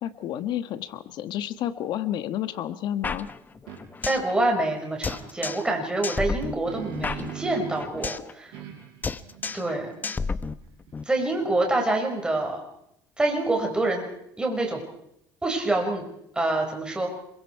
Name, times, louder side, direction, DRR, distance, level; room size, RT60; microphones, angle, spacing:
voice 1, 0.0-3.3, left 11 dB, 60° left, 12 dB, 1.4 m, -30 dB
sound 1, 3.0-4.3 4.6-4.7 5.0-5.8 6.0-8.3 8.6-8.8 9.0-9.8 10.0-11.0, left 4 dB, 20° left, 0.9 m, -32 dB
sound 2, 3.7-3.8 6.2-8.0 8.5-11.9, right 11 dB, 80° right, 5.9 m, -42 dB
voice 2, 4.0-8.5 9.5-9.9 11.1-12.6 13.2-14.1 14.4-14.8 15.4-16.0 16.4-17.1, right 2 dB, 10° right, 1 dB, 5.6 m, -26 dB
27.0 x 22.5 x 4.7 m, 0.76 s
cardioid pair, 125°, 8 cm